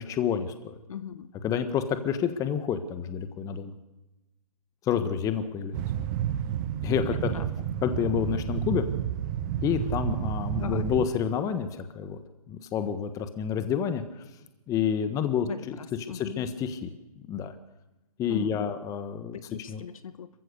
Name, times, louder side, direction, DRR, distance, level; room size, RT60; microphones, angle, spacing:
voice 1, 0.0-0.8 1.4-3.7 4.8-5.8 6.8-7.3 7.8-8.8 9.6-12.2 12.5-14.0 14.7-15.5 16.0-16.9 17.3-17.5 18.2-19.4 19.7-19.8, left 8 dB, 15° left, 10 dB, 1.4 m, -29 dB
voice 2, 0.9-1.3 7.1-7.5 10.6-10.9 15.4-16.4 18.3-18.7 19.5-20.3, left 8 dB, 60° left, 12 dB, 1.4 m, -39 dB
sound 1, 5.7-11.1, right 10 dB, 30° right, 1.4 m, -30 dB
27.0 x 15.5 x 6.6 m, 1.0 s
hypercardioid pair, 140°, 20 cm